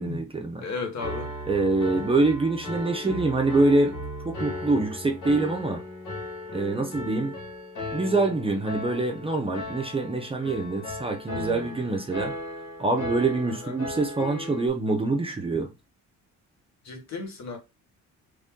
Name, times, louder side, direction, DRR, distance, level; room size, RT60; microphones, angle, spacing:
voice 1, 0.0-0.7 1.5-4.0 4.2-5.8 6.5-7.3 7.9-12.3 12.8-15.7, right 2 dB, 20° right, 0.6 m, -25 dB
voice 2, 0.6-1.3 1.9-2.0 13.6-13.7 16.8-17.6, left 4 dB, 60° left, 1.2 m, -34 dB
Piano, 1.0-14.7, left 1 dB, 85° left, 1.7 m, -36 dB
3.2 x 2.7 x 3.6 m
cardioid pair, 135°, 31 cm